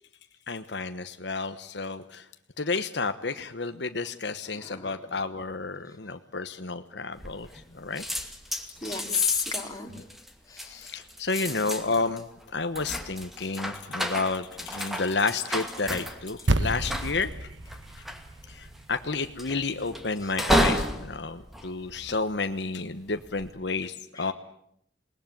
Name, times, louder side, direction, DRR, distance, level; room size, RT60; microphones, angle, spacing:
voice 1, 0.5-2.2 2.6-7.5 7.7-8.0 9.9-10.0 10.6-12.2 12.5-17.5 18.5-24.3, left 3 dB, 70° left, 9 dB, 1.2 m, -31 dB
voice 2, 4.5-5.0 8.8-9.9 10.5-10.9 24.1-24.3, left 7 dB, 20° left, 2 dB, 3.4 m, -31 dB
sound 1, 7.2-7.7 8.0-22.5 23.1-23.5, equal, ahead, 2.4 m, -32 dB
sound 2, 16.5-21.0, right 1 dB, 85° right, 1.3 m, -32 dB
28.0 x 20.5 x 9.3 m, 0.73 s
head